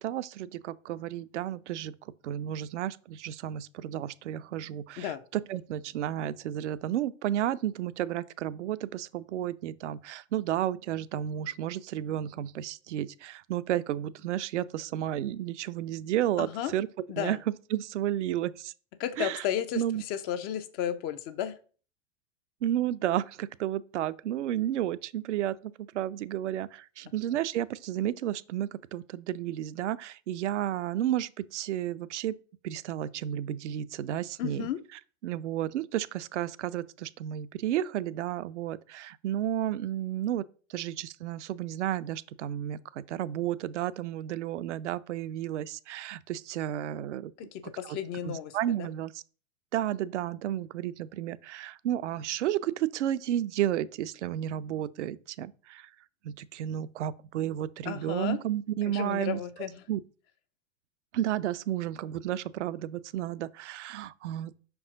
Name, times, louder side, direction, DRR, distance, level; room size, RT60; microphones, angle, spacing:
voice 1, 0.0-16.9 17.2-17.4 17.7-18.7 19.2-19.4 19.7-20.0 22.6-32.3 32.6-34.7 35.2-40.4 40.7-47.3 47.9-48.0 48.3-49.1 49.7-55.9 56.2-59.4 59.9-60.0 61.1-64.6, right 12 dB, 65° right, 0.5 m, -32 dB
voice 2, 16.4-16.7 17.1-17.4 19.0-21.6 34.4-34.8 47.4-48.9 57.8-58.4 58.9-59.9, left 10 dB, 30° left, 0.4 m, -33 dB
5.4 x 4.6 x 3.7 m
figure-of-eight pair, 90°, 38 cm